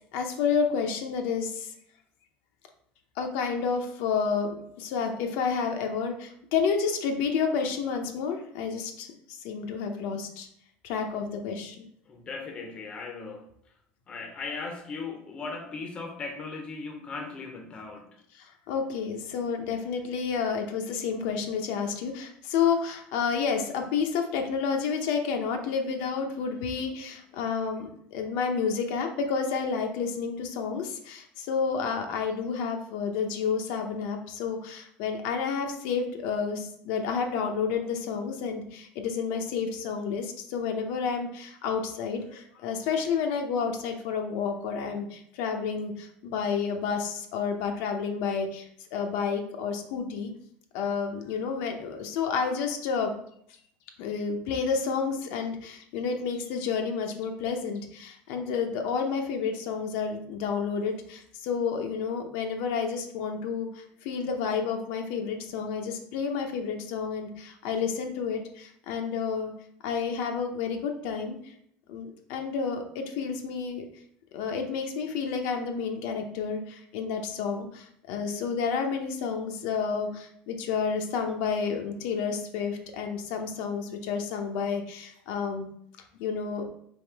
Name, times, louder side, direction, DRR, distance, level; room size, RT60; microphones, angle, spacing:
voice 1, 0.1-1.7 3.2-10.5 10.8-11.8 18.4-50.3 50.7-53.1 54.0-69.5 69.8-71.5 71.9-73.8 74.3-85.7 86.2-86.6, left 6 dB, 70° left, 4 dB, 0.7 m, -30 dB
voice 2, 12.0-13.5 14.1-18.2, left 4 dB, 25° left, 3 dB, 0.6 m, -38 dB
3.5 x 3.1 x 4.5 m, 0.68 s
cardioid pair, 155°, 4 cm